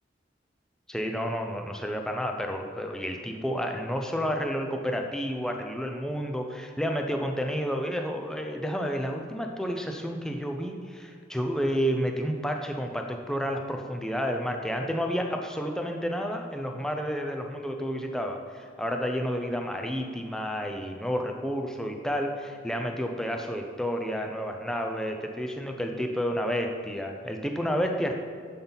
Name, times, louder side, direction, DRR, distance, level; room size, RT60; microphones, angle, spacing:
voice 1, 0.9-28.1, equal, 5° left, 3 dB, 0.5 m, -30 dB
11.0 x 5.5 x 4.0 m, 2.1 s
head